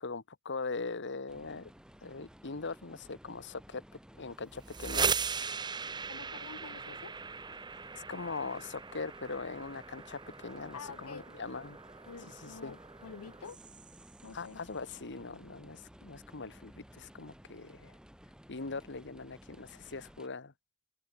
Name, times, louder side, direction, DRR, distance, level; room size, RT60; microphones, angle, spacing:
voice 1, 0.0-1.7 2.0-3.8 4.2-5.1 7.9-11.8 12.3-12.8 14.3-18.0 18.5-20.5, left 4 dB, 55° left, 1.5 m, -41 dB
sound 1, 1.3-20.3, equal, 5° right, 3.9 m, -56 dB
sound 2, 4.5-14.3, right 5 dB, 20° right, 0.7 m, -39 dB
voice 2, 6.1-7.1 10.7-11.2 12.1-13.6 14.2-14.6, left 5 dB, 80° left, 0.8 m, -48 dB
open air
head